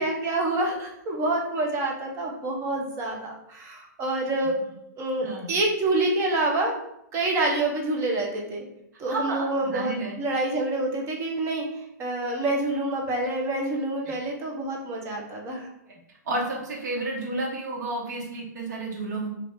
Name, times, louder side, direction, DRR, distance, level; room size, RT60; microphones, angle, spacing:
voice 1, 0.0-4.6 5.0-6.7 7.1-8.6 9.0-11.6 12.0-15.7, right 2 dB, 25° right, 0 dB, 0.8 m, -27 dB
voice 2, 5.2-5.5 8.9-10.1 14.0-14.1 15.9-16.0 16.2-19.3, right 2 dB, 65° right, -2 dB, 1.1 m, -31 dB
2.7 x 2.5 x 3.5 m, 0.79 s
hypercardioid pair, 125°, 10 cm